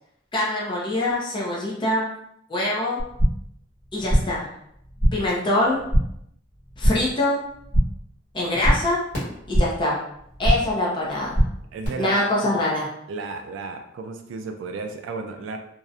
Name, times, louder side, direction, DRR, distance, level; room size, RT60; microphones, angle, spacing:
voice 1, 0.3-2.1 2.5-3.0 3.9-4.5 5.1-5.8 6.8-7.4 8.3-9.0 9.5-10.0 10.4-11.4 12.0-12.9, left 1 dB, 25° left, -5 dB, 0.4 m, -24 dB
sound 1, 3.0-3.6 3.8-4.5 4.7-5.4 5.6-6.2 6.5-7.2 7.5-8.1 8.4-9.9 10.2-10.8 11.1-11.9, equal, 60° left, 1.3 m, -23 dB
voice 2, 11.7-12.2 13.1-15.6, right 4 dB, 75° right, 6 dB, 0.3 m, -33 dB
2.6 x 2.0 x 2.4 m, 0.75 s
head